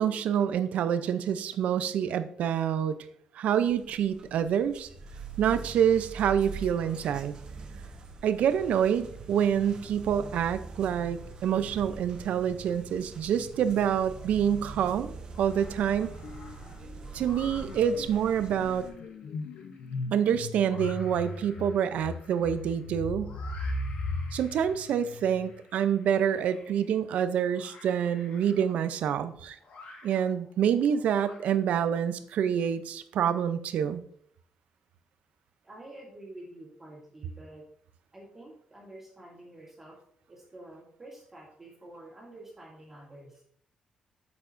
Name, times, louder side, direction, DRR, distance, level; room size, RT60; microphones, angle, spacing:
voice 1, 0.0-3.0 3.4-4.9 5.4-7.3 8.2-16.2 17.1-18.9 20.1-23.4 24.3-29.6 30.0-34.0, right 8 dB, 75° right, 12 dB, 0.5 m, -27 dB
sound 1, 3.7-18.9, right 4 dB, 40° right, 0.9 m, -43 dB
sound 2, 14.1-14.8 15.2-31.9, left 3 dB, 60° left, 1.5 m, -53 dB
sound 3, 16.2-16.6 16.8-25.6, left 2 dB, 85° left, 0.7 m, -38 dB
voice 2, 35.6-37.6 38.1-39.9 40.3-43.4, right 1 dB, 15° right, -5 dB, 2.3 m, -48 dB
8.2 x 7.0 x 2.6 m, 0.63 s
wide cardioid pair, 165°, 2 cm